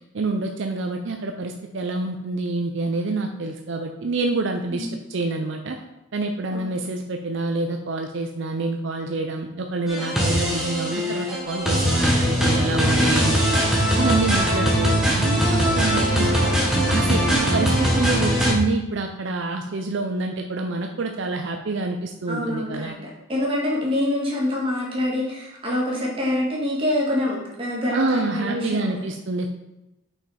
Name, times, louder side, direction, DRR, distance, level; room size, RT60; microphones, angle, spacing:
voice 1, 0.1-5.8 6.1-13.5 14.0-16.5 16.9-23.0 27.9-29.5, right 3 dB, 60° right, 4 dB, 0.5 m, -27 dB
sound 1, 9.9-18.5, equal, ahead, 1.4 m, -21 dB
voice 2, 15.9-16.3 22.3-22.9 23.3-29.0, left 1 dB, 25° right, -4 dB, 1.9 m, -26 dB
5.9 x 5.6 x 4.2 m, 0.93 s
head